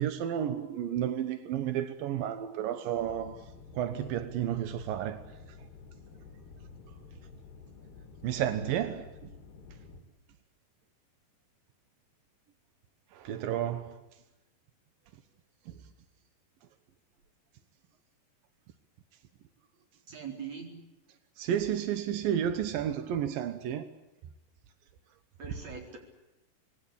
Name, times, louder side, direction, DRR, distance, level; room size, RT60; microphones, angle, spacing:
voice 1, 0.0-3.4 3.7-5.2 8.2-9.1 13.1-14.0 21.4-23.9, right 10 dB, 75° right, 2.2 m, -31 dB
sound 1, 3.0-10.0, left 4 dB, 60° left, 4.6 m, -51 dB
voice 2, 20.1-20.7 25.4-26.0, right 6 dB, 35° right, 5.1 m, -41 dB
26.5 x 20.5 x 8.5 m
omnidirectional pair, 5.4 m